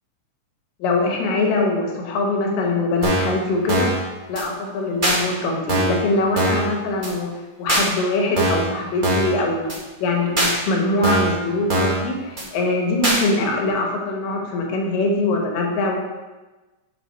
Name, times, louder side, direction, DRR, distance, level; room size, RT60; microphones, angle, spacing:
voice 1, 0.8-4.0 4.3-7.3 7.6-9.7 10.0-16.0, left 2 dB, 80° left, 1 dB, 2.9 m, -22 dB
sound 1, 3.0-3.3 3.7-4.0 4.3-4.4 5.0-5.2 5.7-6.0 6.3-6.7 7.0-7.1 7.7-7.9 8.4-8.7 9.0-9.3 9.7-9.8 10.4-10.5 11.0-11.4 11.7-12.0 12.4-12.5 13.0-13.2, right 1 dB, 35° right, 0.7 m, -21 dB
8.3 x 5.5 x 4.5 m, 1.2 s
omnidirectional pair, 4.0 m